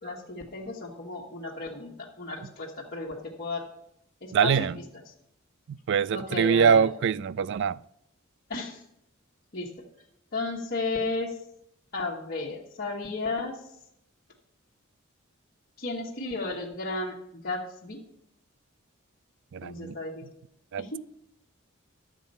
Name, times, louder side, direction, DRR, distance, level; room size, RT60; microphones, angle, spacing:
voice 1, 0.0-3.6 4.2-4.7 6.1-6.9 8.5-8.8 9.5-9.7 10.3-11.4 11.9-13.6 15.8-17.2 17.4-18.0 19.6-20.2 20.8-21.0, left 3 dB, 50° left, 1.4 m, -33 dB
voice 2, 4.3-4.8 5.7-7.8 19.5-20.0 20.7-21.0, right 7 dB, 60° right, 0.3 m, -24 dB
11.0 x 7.4 x 5.4 m
head